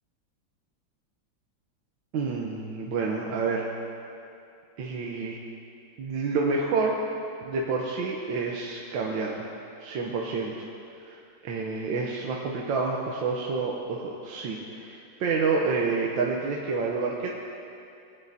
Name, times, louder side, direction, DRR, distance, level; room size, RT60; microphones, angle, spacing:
voice 1, 2.1-3.7 4.8-5.4 6.0-7.0 7.4-9.5 9.8-10.5 11.1-17.3, right 4 dB, 75° right, -2 dB, 1.5 m, -28 dB
18.5 x 9.5 x 2.7 m, 2.6 s
omnidirectional pair, 2.1 m